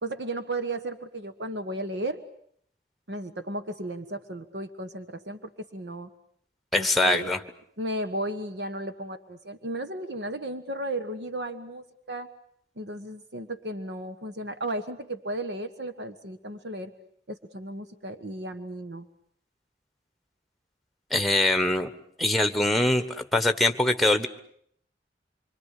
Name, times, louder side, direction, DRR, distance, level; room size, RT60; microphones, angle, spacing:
voice 1, 0.0-2.2 3.1-6.1 6.8-7.3 7.8-12.3 12.8-16.9 17.3-19.1, right 1 dB, 70° right, 9 dB, 1.4 m, -34 dB
voice 2, 6.7-7.4 21.1-21.9 22.2-24.3, left 1 dB, ahead, 9 dB, 1.4 m, -23 dB
26.0 x 24.5 x 8.5 m, 0.65 s
head